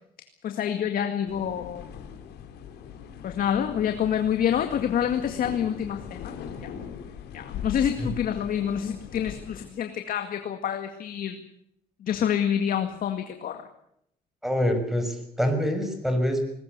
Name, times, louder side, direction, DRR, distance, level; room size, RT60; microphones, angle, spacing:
voice 1, 0.4-1.9 3.2-6.7 7.3-11.4 12.0-13.7, left 9 dB, 60° left, 6 dB, 2.1 m, -27 dB
sound 1, 1.3-9.7, left 8 dB, 75° left, 3.9 m, -40 dB
voice 2, 14.4-16.4, equal, ahead, 7 dB, 6.2 m, -25 dB
21.0 x 20.5 x 8.2 m, 0.74 s
cardioid pair, 110°, 17 cm